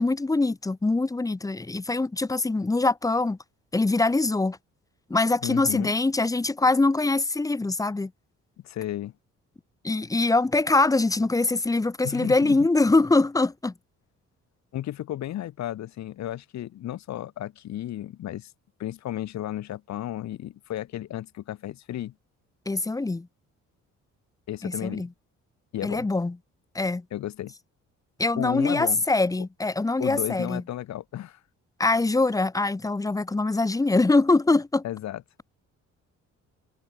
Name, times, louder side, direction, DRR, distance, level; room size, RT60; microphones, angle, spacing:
voice 1, 0.0-3.4 3.7-4.6 5.1-8.1 9.8-13.7 22.7-23.3 24.6-25.1 25.8-26.4 26.7-27.0 28.2-30.6 31.8-34.8, left 3 dB, 10° left, 0.6 m, -23 dB
voice 2, 5.4-5.9 8.6-9.1 12.0-12.6 14.7-18.5 18.8-22.1 24.5-25.1 25.7-26.1 27.1-27.5 28.4-29.0 30.0-31.4 34.8-35.2, left 12 dB, 65° left, 1.0 m, -33 dB
cardioid pair, 90°, 30 cm